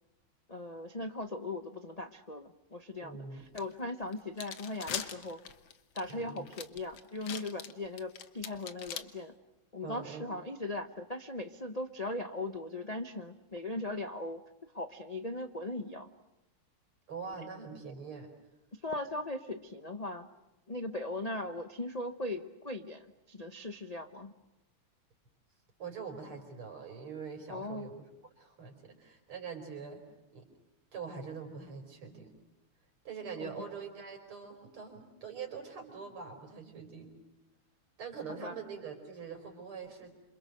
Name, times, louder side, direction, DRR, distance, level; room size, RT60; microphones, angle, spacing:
voice 1, 0.5-5.4 5.9-9.3 9.7-14.4 14.7-16.1 18.8-20.3 20.7-24.3 27.5-27.9 33.4-33.5 38.4-38.5, left 2 dB, 40° left, 6 dB, 0.5 m, -39 dB
voice 2, 3.0-3.4 6.1-6.5 9.8-10.3 17.1-18.3 25.8-28.0 28.4-30.0 30.3-30.5 30.9-32.3 33.1-37.2 38.0-40.1, right 5 dB, 75° right, 3 dB, 5.6 m, -43 dB
sound 1, 3.5-3.6 4.1-9.0, left 8 dB, 70° left, 2.0 m, -41 dB
28.0 x 27.5 x 6.7 m, 0.93 s
omnidirectional pair, 2.4 m